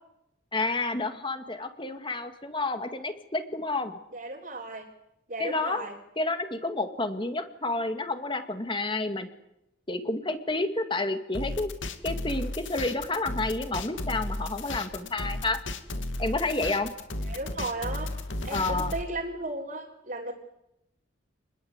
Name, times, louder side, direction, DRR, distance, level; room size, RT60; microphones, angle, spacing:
voice 1, 0.5-4.0 5.4-5.9 6.2-9.3 9.9-11.7 12.0-15.6 16.2-16.9 18.5-18.9, left 2 dB, 25° left, 8 dB, 2.0 m, -30 dB
voice 2, 4.1-4.9 5.3-6.0 17.2-18.1 18.4-20.3, right 2 dB, 45° right, -2 dB, 3.7 m, -35 dB
sound 1, 11.3-19.0, left 1 dB, 75° left, 2.4 m, -34 dB
29.0 x 21.0 x 8.1 m, 0.86 s
head